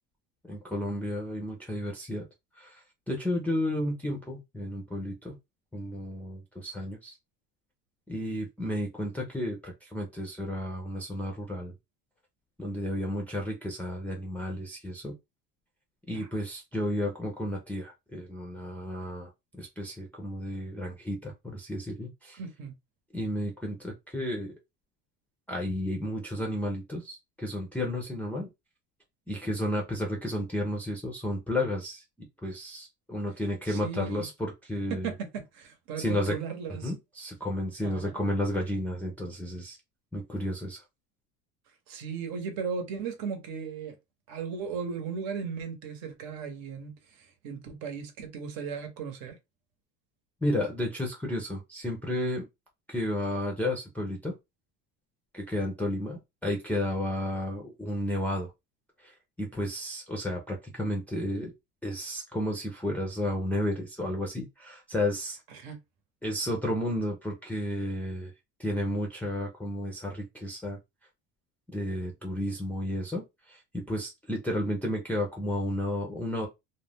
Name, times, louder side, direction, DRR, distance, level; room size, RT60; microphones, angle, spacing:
voice 1, 0.4-2.3 2.6-5.4 5.7-7.2 8.1-11.7 12.6-15.1 16.1-22.4 23.1-24.5 25.5-28.5 29.3-32.0 32.4-35.1 36.0-36.4 36.8-39.8 40.1-40.8 50.4-52.5 52.9-54.4 55.3-58.5 59.0-61.5 61.8-65.4 66.2-68.3 68.6-70.8 71.7-76.5, left 1 dB, 5° left, 0.4 m, -32 dB
voice 2, 22.4-22.7 33.7-34.3 34.9-36.9 37.8-38.1 41.9-43.9 44.3-46.9 47.2-49.4 65.5-65.8, right 6 dB, 70° right, 1.0 m, -36 dB
2.4 x 2.1 x 3.3 m
cardioid pair, 135°, 36 cm